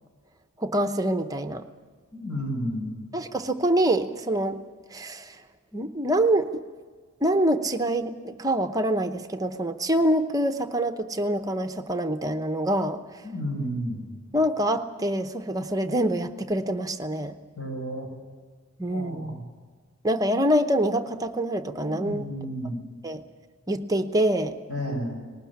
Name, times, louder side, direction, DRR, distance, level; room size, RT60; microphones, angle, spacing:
voice 1, 0.6-1.7 3.1-4.6 4.9-5.4 5.7-6.6 7.2-13.2 14.3-17.4 18.8-19.4 20.0-22.3 23.0-23.2 23.7-24.5, right 1 dB, 15° right, 8 dB, 0.8 m, -25 dB
voice 2, 2.1-2.9 13.2-14.1 17.6-18.1 18.9-19.4 21.8-22.8 24.7-25.2, equal, 90° left, 1 dB, 6.9 m, -32 dB
19.5 x 18.5 x 8.6 m, 1.5 s
head